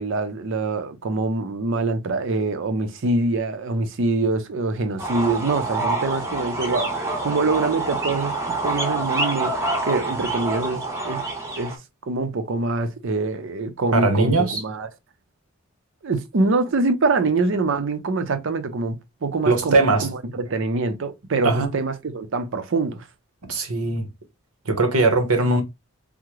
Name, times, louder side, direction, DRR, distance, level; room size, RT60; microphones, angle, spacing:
voice 1, 0.0-8.4 8.6-11.2 11.6-11.8 12.1-14.9 16.0-23.1, right 3 dB, 60° right, 0.5 m, -24 dB
sound 1, 5.0-11.8, right 2 dB, 15° right, 0.7 m, -26 dB
voice 2, 13.9-14.6 19.5-20.1 21.4-21.7 23.5-24.1 24.6-25.6, right 3 dB, 85° right, 0.9 m, -20 dB
3.6 x 2.0 x 3.0 m
head